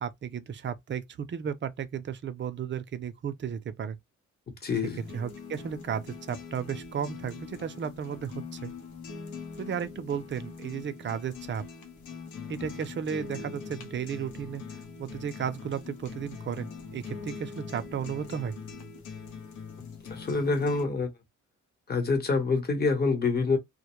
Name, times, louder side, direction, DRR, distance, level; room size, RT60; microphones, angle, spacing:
voice 1, 0.0-4.0 5.1-8.7 9.6-11.6 12.5-14.6 15.0-18.5, right 8 dB, 40° right, 0.5 m, -34 dB
voice 2, 4.6-5.1 20.1-21.1 21.9-23.6, left 4 dB, 30° left, 1.0 m, -26 dB
sound 1, 4.8-20.8, left 5 dB, 75° left, 0.8 m, -43 dB
2.1 x 2.1 x 3.0 m
cardioid pair, 90°, 30 cm